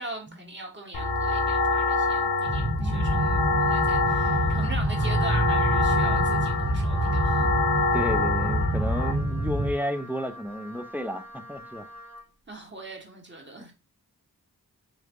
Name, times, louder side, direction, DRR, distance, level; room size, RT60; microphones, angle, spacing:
voice 1, 0.0-7.5 12.5-13.7, right 2 dB, 30° right, 1.2 m, -40 dB
sound 1, 0.9-9.1, left 3 dB, 80° left, 0.7 m, -26 dB
sound 2, 2.5-9.7, right 1 dB, 85° right, 1.0 m, -27 dB
voice 2, 2.8-3.3 6.6-6.7 7.9-11.9, equal, 5° right, 0.4 m, -32 dB
Wind instrument woodwind instrument, 4.0-12.3, left 1 dB, 50° right, 1.0 m, -46 dB
3.3 x 3.2 x 2.4 m
wide cardioid pair, 65°, 37 cm